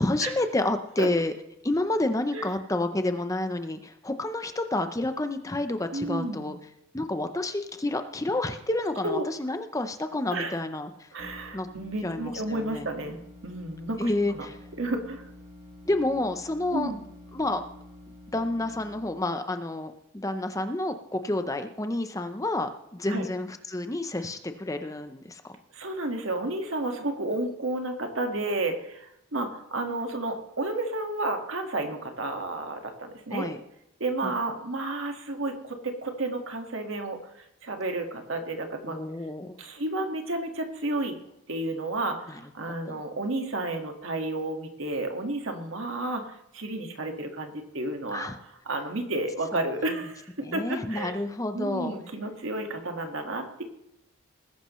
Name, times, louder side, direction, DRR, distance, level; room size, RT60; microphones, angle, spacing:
voice 1, 0.0-1.3 1.6-6.6 6.9-11.1 11.5-11.7 12.0-12.9 14.0-14.6 15.9-16.9 17.3-17.6 18.3-25.4 33.3-33.6 34.2-34.3 38.8-39.6 42.3-42.4 42.8-43.0 48.1-48.3 49.5-49.6 50.4-52.0, left 2 dB, 15° left, 8 dB, 0.6 m, -29 dB
voice 2, 5.9-6.5 9.0-9.3 10.3-10.6 11.1-13.2 13.4-14.5 14.8-15.3 16.7-17.0 23.1-23.3 25.7-33.5 34.0-39.0 39.6-41.2 41.5-48.3 48.7-51.2 51.5-53.6, right 2 dB, 70° right, 4 dB, 1.7 m, -31 dB
sound 1, 11.2-19.2, left 1 dB, 30° right, 2.1 m, -48 dB
20.0 x 11.0 x 3.1 m, 0.82 s
head